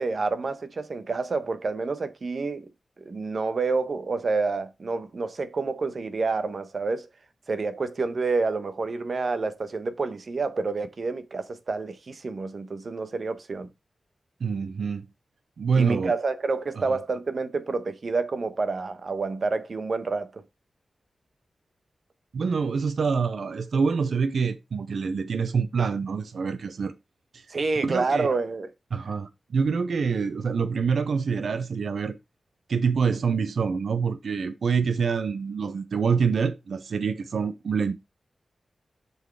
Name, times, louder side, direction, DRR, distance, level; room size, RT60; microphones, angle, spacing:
voice 1, 0.0-2.7 3.0-7.1 7.5-13.7 15.7-20.4 27.5-28.7, right 4 dB, 55° right, 1.1 m, -28 dB
voice 2, 14.4-15.1 15.6-16.1 16.8-17.0 22.3-26.9 27.3-27.4 27.8-28.3 28.9-32.2 32.7-37.9, right 5 dB, 80° right, 0.7 m, -26 dB
6.5 x 4.7 x 4.7 m
wide cardioid pair, 90°, 0 cm